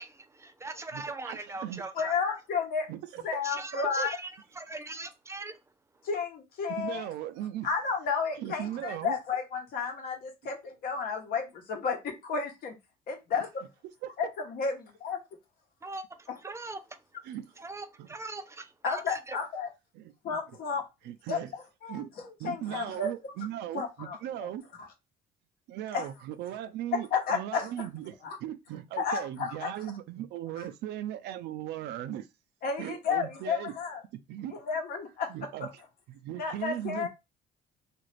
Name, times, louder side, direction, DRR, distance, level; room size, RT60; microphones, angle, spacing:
voice 1, 0.0-2.2 3.4-5.6 5.9-6.0 15.8-16.8 17.6-19.4, right 3 dB, 15° right, 0.4 m, -41 dB
voice 2, 0.9-1.9 2.9-3.2 4.0-4.1 6.8-7.7 8.4-9.2 14.0-14.1 17.3-17.5 18.0-18.1 19.9-20.1 21.1-21.5 21.9-22.1 22.4-24.7 25.7-28.1 28.4-32.3 32.8-33.8 34.1-34.6 35.3-35.7 36.1-37.1, right 12 dB, 80° right, 0.4 m, -38 dB
voice 3, 1.9-2.9 3.2-4.1 6.0-7.1 7.6-12.7 13.1-13.5 14.2-15.2 18.8-19.7 20.2-20.8 21.3-21.4 21.8-23.1 23.7-24.5 24.8-24.9 25.9-26.1 26.9-27.9 28.2-28.4 29.0-29.7 30.6-30.7 32.6-34.0 34.5-35.3 35.6-35.7 36.4-37.1, left 5 dB, 60° left, 1.0 m, -32 dB
2.9 x 2.5 x 3.2 m
cardioid pair, 110°, 17 cm